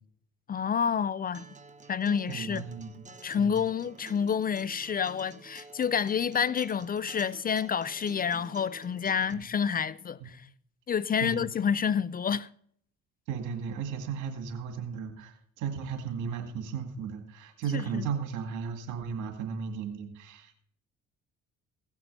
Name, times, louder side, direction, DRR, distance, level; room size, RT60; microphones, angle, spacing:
voice 1, 0.5-1.5 1.9-2.6 3.2-10.5 10.9-12.5 17.7-18.1, left 7 dB, 30° left, 0.4 m, -29 dB
Acoustic guitar, 1.3-9.3, right 4 dB, 25° right, 1.0 m, -50 dB
voice 2, 2.3-3.1 3.4-3.6 9.3-9.4 10.2-10.3 11.2-11.4 13.3-20.5, right 6 dB, 80° right, 2.1 m, -35 dB
16.5 x 6.0 x 5.4 m
supercardioid pair, 75°, 30 cm